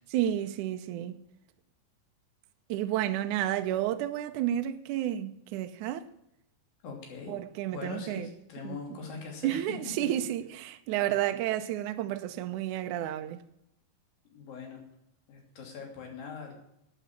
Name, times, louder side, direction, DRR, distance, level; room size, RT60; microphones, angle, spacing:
voice 1, 0.1-1.2 2.7-6.1 7.3-8.3 8.6-9.0 9.4-13.4, right 12 dB, 75° right, 2.0 m, -31 dB
voice 2, 6.8-7.3 7.7-9.6 14.3-14.8 15.3-16.5, left 5 dB, 90° left, 4.6 m, -41 dB
11.5 x 9.2 x 7.4 m
omnidirectional pair, 4.0 m